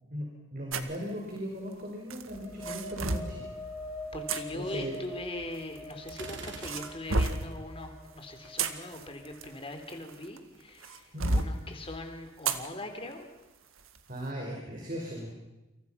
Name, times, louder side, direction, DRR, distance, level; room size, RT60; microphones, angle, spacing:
voice 1, 0.5-3.5 4.5-5.0 11.1-11.3 14.1-15.3, equal, 45° right, -1 dB, 5.5 m, -37 dB
sound 1, 0.7-1.0 2.1-3.3 4.3-4.4 5.5-6.2 6.6-7.5 8.3-10.4 10.8-11.5 12.4-12.7 13.1-13.2 13.8-14.0, right 3 dB, 85° right, 1.9 m, -31 dB
sound 2, 2.2-9.7, left 1 dB, 5° right, 7.5 m, -45 dB
voice 2, 4.1-11.1 11.3-13.3, left 1 dB, 25° left, 5 dB, 3.6 m, -41 dB
Gunshot gunfire, 6.1-7.3, right 3 dB, 60° right, 3.4 m, -44 dB
29.0 x 27.0 x 5.9 m, 1.0 s
head